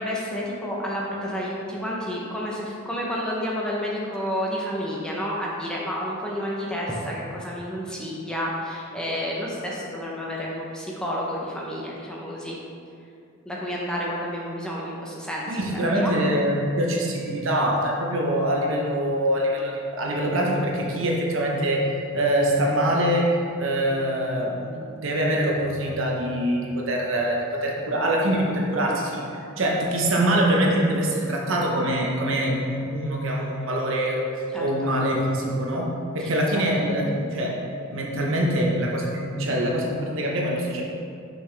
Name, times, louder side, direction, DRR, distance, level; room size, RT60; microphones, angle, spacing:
voice 1, 0.0-12.6 13.5-16.1 34.5-35.0 36.2-36.6, equal, 5° left, -5 dB, 0.7 m, -30 dB
voice 2, 15.5-23.3 23.6-34.3 34.6-40.8, right 1 dB, 65° right, -1 dB, 0.9 m, -24 dB
5.8 x 5.8 x 3.3 m, 2.5 s
head